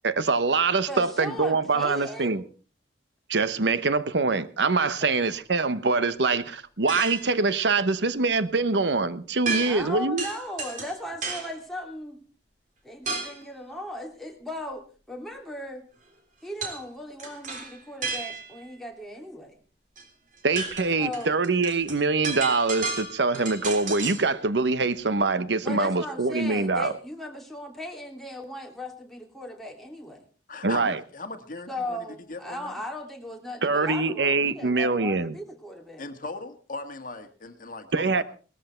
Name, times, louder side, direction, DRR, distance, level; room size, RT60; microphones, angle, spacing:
voice 1, 0.0-2.4 3.3-10.2 20.4-26.9 30.6-31.0 33.6-35.4 37.9-38.2, right 3 dB, 80° right, 1.0 m, -24 dB
voice 2, 0.9-2.5 9.6-12.2 12.8-15.9 16.4-19.5 21.0-21.3 25.6-30.3 31.7-36.0, left 1 dB, ahead, 2.8 m, -37 dB
sound 1, 6.9-7.4 9.5-9.9 10.2-11.6 13.1-13.5 16.6-16.8 17.2-18.6 20.0-20.1 20.4-24.3, right 4 dB, 45° right, 3.4 m, -33 dB
voice 3, 30.5-32.8 36.0-38.2, left 3 dB, 50° left, 1.7 m, -38 dB
19.0 x 13.5 x 4.4 m
head